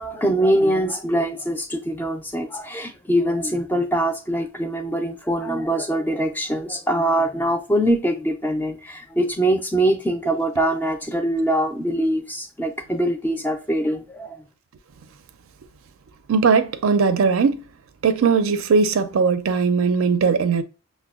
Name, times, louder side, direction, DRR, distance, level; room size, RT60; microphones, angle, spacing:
voice 1, 0.0-14.4, right 1 dB, 10° left, 0.3 m, -23 dB
voice 2, 16.3-17.6 18.0-20.6, right 5 dB, 75° right, 0.4 m, -19 dB
5.9 x 2.1 x 2.3 m
head